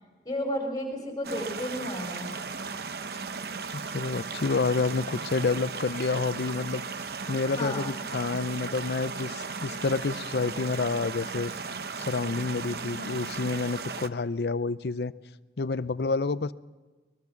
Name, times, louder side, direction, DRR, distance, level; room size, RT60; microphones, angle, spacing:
voice 1, 0.2-2.3 7.6-7.9 12.7-13.1, equal, 20° left, 2 dB, 5.3 m, -33 dB
sound 1, 1.2-14.1, right 5 dB, 60° right, 0.8 m, -36 dB
voice 2, 3.9-11.5 12.1-15.1 15.6-16.5, left 4 dB, 65° left, 16 dB, 0.6 m, -29 dB
23.0 x 21.5 x 5.9 m, 1.3 s
head